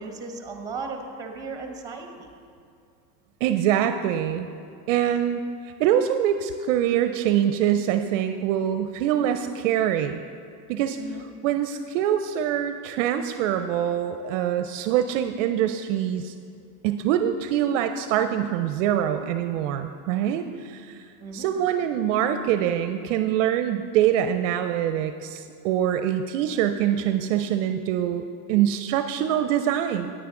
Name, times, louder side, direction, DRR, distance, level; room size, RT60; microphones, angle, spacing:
voice 1, 0.0-2.3 11.0-11.2 21.2-21.7, right 4 dB, 10° right, 4 dB, 0.8 m, -36 dB
voice 2, 3.4-4.5 4.9-5.4 5.8-10.2 10.7-11.0 11.4-16.3 16.8-30.1, right 10 dB, 55° right, 8 dB, 0.5 m, -24 dB
9.4 x 9.4 x 3.7 m, 2.4 s
supercardioid pair, 135°, 47 cm